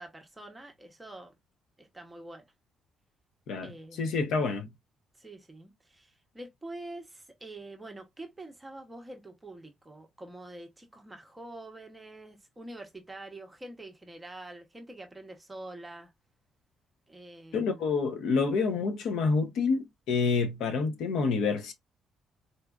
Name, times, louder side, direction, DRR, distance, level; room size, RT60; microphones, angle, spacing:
voice 1, 0.0-1.3 1.8-2.5 3.6-4.1 5.2-16.1 17.1-17.9, right 2 dB, 10° right, 0.7 m, -46 dB
voice 2, 4.0-4.7 17.5-21.7, left 4 dB, 70° left, 0.7 m, -28 dB
3.9 x 2.4 x 2.2 m
cardioid pair, 165°, 0 cm